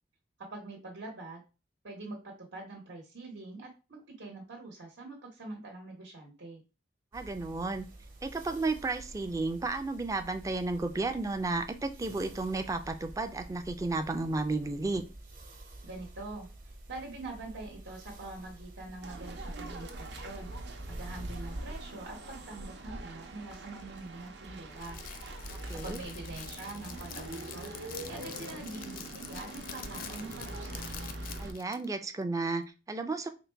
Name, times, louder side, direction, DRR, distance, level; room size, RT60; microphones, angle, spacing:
voice 1, 0.4-1.4 1.8-6.6 15.8-20.5 20.9-25.0 25.7-30.9, right 2 dB, 80° right, 0 dB, 1.1 m, -44 dB
voice 2, 7.1-7.9 8.2-15.0 25.5-26.0 31.4-33.3, right 3 dB, 20° right, 7 dB, 0.3 m, -33 dB
sound 1, 7.1-22.2, right 1 dB, 50° right, 1.1 m, -50 dB
sound 2, 19.0-31.5, right 1 dB, 65° right, 0.7 m, -42 dB
Crackle, 24.7-31.9, left 8 dB, 50° left, 0.4 m, -46 dB
3.9 x 2.2 x 4.4 m, 0.31 s
head